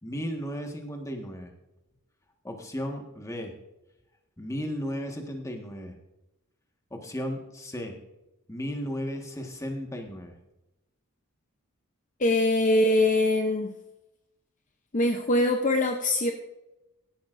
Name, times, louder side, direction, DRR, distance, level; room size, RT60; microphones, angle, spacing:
voice 1, 0.0-1.5 2.4-3.5 4.4-6.0 6.9-8.0 8.5-10.4, equal, 15° left, 3 dB, 1.5 m, -35 dB
voice 2, 12.2-13.7 14.9-16.3, left 1 dB, 35° left, 4 dB, 0.7 m, -23 dB
16.5 x 11.0 x 2.6 m, 0.96 s
head